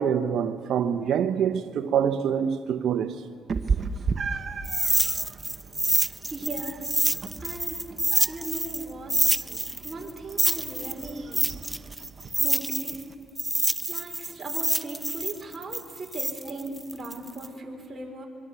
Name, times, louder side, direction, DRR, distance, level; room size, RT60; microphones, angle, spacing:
voice 1, 0.0-3.2, right 8 dB, 75° right, 0.9 m, -25 dB
Meow, 3.5-13.1, right 5 dB, 45° right, 1.1 m, -35 dB
sound 1, 4.6-8.8 9.1-13.0 13.4-17.5, right 1 dB, 10° right, 0.5 m, -26 dB
voice 2, 6.0-7.8 8.3-9.1 9.8-11.4 12.4-13.0 13.9-18.3, right 2 dB, 30° right, 4.6 m, -38 dB
25.0 x 23.0 x 7.0 m
cardioid pair, 90°, 0 cm